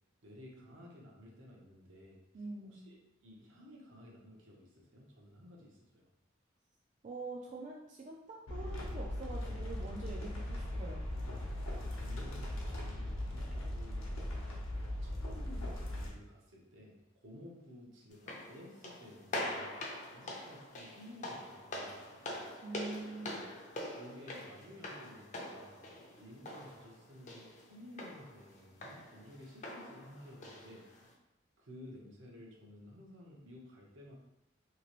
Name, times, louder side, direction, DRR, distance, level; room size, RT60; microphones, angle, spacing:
voice 1, 0.2-2.2 2.6-6.1 11.9-14.1 15.0-19.8 20.1-22.3 23.3-23.5 24.0-25.8 26.2-30.9 31.6-34.1, left 1 dB, 70° right, -2 dB, 0.8 m, -54 dB
voice 2, 2.3-2.9 7.0-11.1 22.6-23.5, right 3 dB, 40° right, -2 dB, 0.3 m, -45 dB
sound 1, 8.5-16.1, left 1 dB, 85° left, 0.8 m, -39 dB
sound 2, 18.1-31.1, left 1 dB, 35° left, 0.5 m, -45 dB
2.9 x 2.9 x 2.9 m, 0.87 s
head